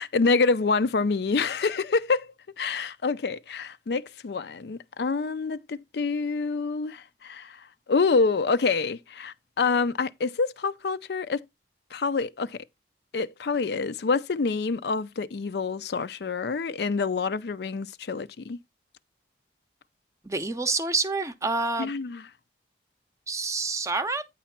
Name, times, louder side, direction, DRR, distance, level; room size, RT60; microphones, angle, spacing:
voice 1, 0.0-2.3 2.6-7.6 7.9-11.4 11.9-12.6 13.1-18.6 21.8-22.2, left 4 dB, 65° left, 0.5 m, -27 dB
voice 2, 20.2-21.9 23.3-24.3, right 3 dB, 15° right, 0.6 m, -27 dB
9.1 x 3.1 x 5.8 m
head